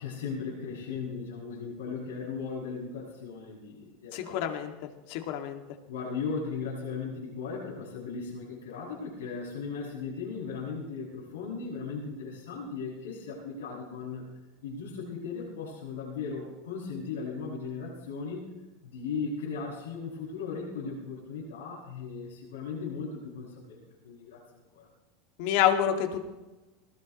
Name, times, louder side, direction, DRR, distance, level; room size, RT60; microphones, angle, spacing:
voice 1, 0.0-4.5 5.9-14.2 14.6-24.9, left 5 dB, 90° left, -6 dB, 7.0 m, -37 dB
voice 2, 4.1-4.7 5.1-5.6 25.4-26.3, left 10 dB, 65° left, 4 dB, 2.3 m, -27 dB
21.0 x 17.5 x 3.2 m, 1.1 s
supercardioid pair, 110°, 0 cm